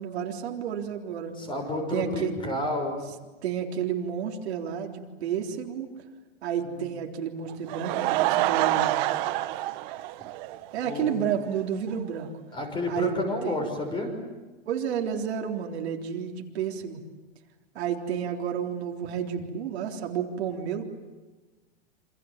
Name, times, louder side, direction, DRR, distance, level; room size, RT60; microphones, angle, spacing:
voice 1, 0.0-1.3 1.9-2.3 3.4-5.9 6.4-9.1 10.7-12.3 12.9-13.1 13.4-13.5 14.7-17.0 17.8-20.8, right 8 dB, 65° right, 2 dB, 3.8 m, -31 dB
voice 2, 1.4-3.0 6.6-6.8 10.8-11.2 12.5-14.1, left 1 dB, 15° left, 4 dB, 6.3 m, -30 dB
Laughter / Crowd, 7.5-11.0 11.3-11.4 11.9-12.0 12.2-12.3, right 16 dB, 40° right, 1.3 m, -27 dB
27.5 x 27.0 x 7.4 m, 1.3 s
hypercardioid pair, 145°, 35 cm